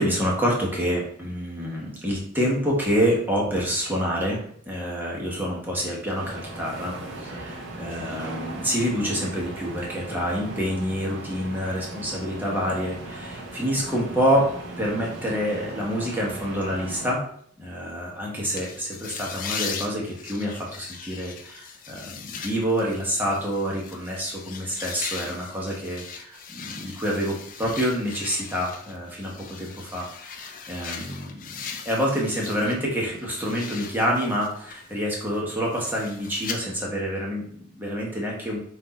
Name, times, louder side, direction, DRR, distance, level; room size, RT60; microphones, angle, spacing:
voice 1, 0.0-14.5 14.8-17.2 17.6-31.4 31.8-38.6, equal, 10° right, -3 dB, 1.1 m, -27 dB
sound 1, 6.1-17.1, right 2 dB, 80° right, 0.8 m, -38 dB
sound 2, 18.6-32.8 33.1-36.6, left 6 dB, 45° left, 0.5 m, -39 dB
4.5 x 2.6 x 4.1 m, 0.63 s
head